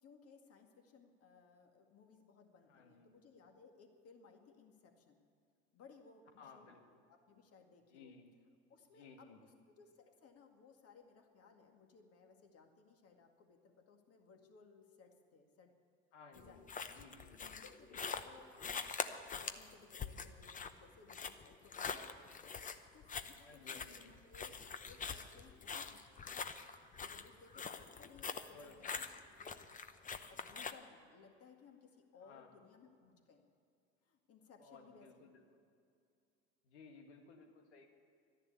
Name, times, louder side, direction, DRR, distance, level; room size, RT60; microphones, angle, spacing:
voice 1, 0.0-5.2 5.7-8.1 8.7-15.7 16.3-16.7 17.5-19.1 19.4-24.6 24.8-26.5 27.0-29.6 29.9-33.5 34.0-35.3, left 5 dB, 45° left, 4 dB, 2.1 m, -62 dB
voice 2, 2.7-3.1 6.4-6.9 7.9-8.4 8.9-9.6 16.1-16.6 16.9-17.6 17.9-18.1 23.4-24.2 28.5-29.0 32.2-32.7 34.6-35.4 36.6-37.9, left 4 dB, 85° left, 4 dB, 1.9 m, -59 dB
sound 1, 16.4-30.7, left 6 dB, 25° left, 0.8 m, -44 dB
12.5 x 10.5 x 8.2 m, 2.4 s
hypercardioid pair, 85°, 34 cm